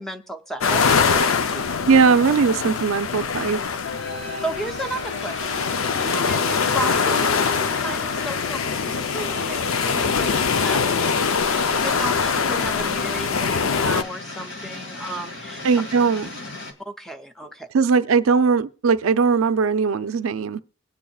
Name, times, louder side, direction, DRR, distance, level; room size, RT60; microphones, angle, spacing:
voice 1, 0.0-2.1 4.4-15.7 16.8-17.7, right 1 dB, ahead, 0.5 m, -34 dB
sound 1, 0.6-14.0, left 5 dB, 85° left, 0.5 m, -23 dB
voice 2, 1.9-3.6 15.6-16.3 17.7-20.6, right 5 dB, 85° right, 0.5 m, -19 dB
sound 2, 3.8-16.7, left 2 dB, 70° left, 1.9 m, -36 dB
22.5 x 8.5 x 2.3 m
head